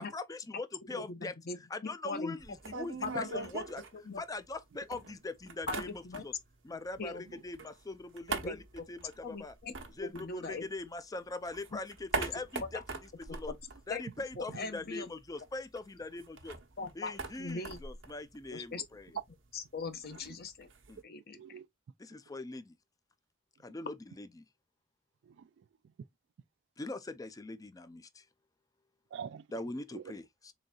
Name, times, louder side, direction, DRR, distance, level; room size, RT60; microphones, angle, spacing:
voice 1, 0.0-1.4 1.7-3.8 4.2-6.3 6.6-8.6 8.9-9.5 9.9-13.5 13.9-16.6 16.9-19.1 20.9-21.0 22.0-22.8 23.6-24.4 26.8-28.3 29.5-30.5, left 2 dB, 20° left, 0.4 m, -42 dB
voice 2, 0.9-1.6 1.8-2.4 3.0-3.5 3.9-4.2 5.7-6.2 7.0-7.2 8.3-8.6 9.2-9.7 10.0-10.6 12.7-12.8 13.9-14.0 14.4-15.1 16.8-17.8 18.5-18.8 19.5-20.7 21.0-21.4, left 3 dB, 55° left, 0.8 m, -40 dB
sound 1, 2.4-4.6 4.9-6.5 6.8-11.0 11.3-14.6 14.8-14.9 15.2-21.0, right 3 dB, 85° right, 1.0 m, -42 dB
voice 3, 20.0-20.4 21.4-21.7 22.1-22.2 25.2-25.9 29.1-30.2, right 7 dB, 65° right, 0.3 m, -48 dB
3.9 x 3.8 x 2.3 m
head